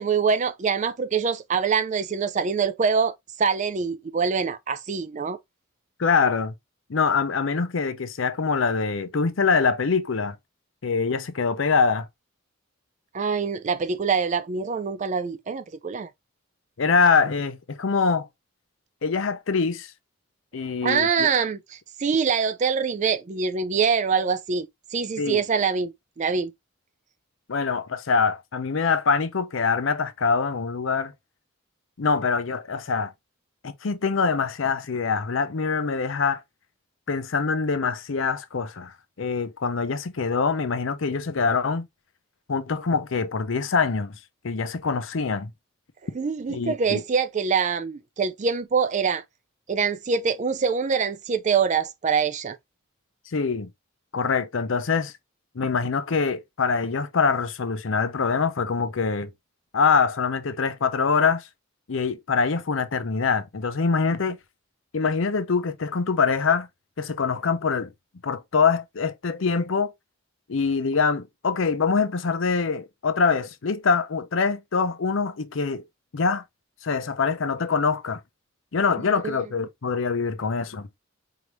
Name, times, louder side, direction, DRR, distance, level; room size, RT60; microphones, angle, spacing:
voice 1, 0.0-5.4 13.1-16.1 20.8-26.5 46.1-49.2 49.7-52.6 79.2-79.4, right 6 dB, 35° right, 0.4 m, -24 dB
voice 2, 6.0-6.5 6.9-10.4 10.8-12.1 16.8-18.3 19.0-19.9 20.5-21.3 25.2-25.4 27.5-31.1 32.0-33.1 33.6-36.4 37.1-41.9 42.5-44.2 44.4-45.5 46.5-47.0 53.3-53.7 54.1-55.1 55.5-59.3 59.7-61.5 61.9-64.4 64.9-66.7 67.0-67.9 68.2-69.9 70.5-75.8 76.1-76.4 76.8-78.2 78.7-80.9, left 5 dB, 70° left, 0.6 m, -24 dB
4.8 x 2.6 x 3.0 m
head